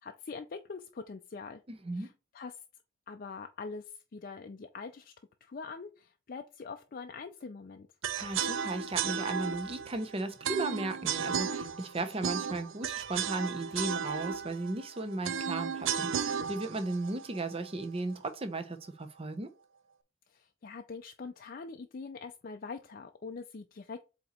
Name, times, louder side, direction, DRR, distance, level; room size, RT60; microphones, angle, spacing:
voice 1, 0.0-1.6 1.9-2.6 3.1-5.1 5.4-7.9 20.3-24.0, left 4 dB, 45° left, 0.4 m, -43 dB
voice 2, 1.7-2.1 8.2-19.5, right 2 dB, 30° right, 0.7 m, -36 dB
sound 1, 8.0-18.1, right 7 dB, 70° right, 0.5 m, -35 dB
7.7 x 2.9 x 4.2 m
head